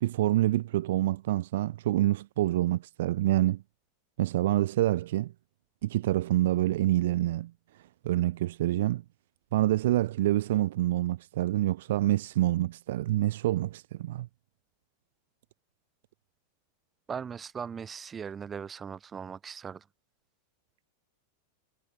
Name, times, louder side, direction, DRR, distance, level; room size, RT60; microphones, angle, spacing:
voice 1, 0.0-3.6 4.2-5.3 5.8-7.5 8.0-9.0 9.5-14.3, right 15 dB, 55° right, 0.3 m, -27 dB
voice 2, 17.1-19.8, right 6 dB, 20° right, 2.5 m, -39 dB
figure-of-eight pair, 90°, 0 cm